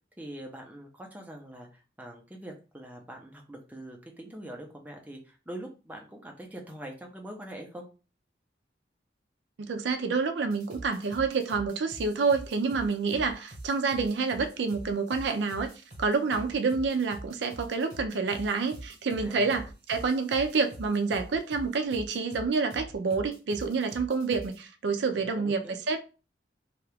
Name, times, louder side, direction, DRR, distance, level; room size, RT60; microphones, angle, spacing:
voice 1, 0.2-7.9 19.2-19.7 25.1-25.8, right 1 dB, 10° right, 0.6 m, -44 dB
voice 2, 9.6-15.7 16.0-26.0, right 4 dB, 75° right, 0.4 m, -28 dB
sound 1, 10.5-24.6, right 1 dB, 40° right, 1.0 m, -45 dB
2.8 x 2.3 x 3.3 m
head